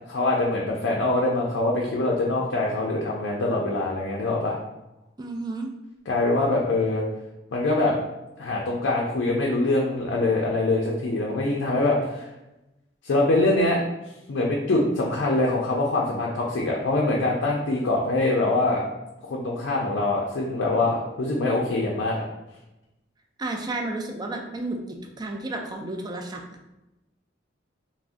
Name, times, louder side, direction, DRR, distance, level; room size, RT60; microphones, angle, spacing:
voice 1, 0.1-4.6 6.1-7.0 7.5-7.9 8.4-12.3 13.0-13.8 14.3-18.8 19.2-22.2, left 2 dB, 70° left, -2 dB, 0.4 m, -24 dB
voice 2, 5.2-5.7 23.4-26.4, right 2 dB, 20° right, 3 dB, 0.3 m, -32 dB
3.5 x 2.1 x 2.5 m, 0.97 s
head